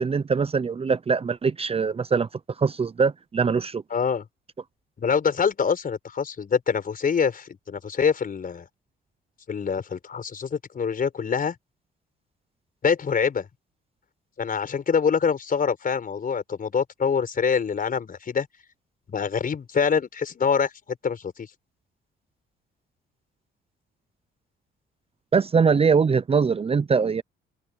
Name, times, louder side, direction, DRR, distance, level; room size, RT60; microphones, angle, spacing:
voice 1, 0.0-2.3 2.6-3.8 25.3-27.2, right 5 dB, 30° right, 0.7 m, -22 dB
voice 2, 3.9-4.2 5.0-8.7 9.5-11.5 12.8-13.5 14.4-18.5 19.1-21.5, left 6 dB, 45° left, 5.0 m, -25 dB
cardioid pair, 90°, 20 cm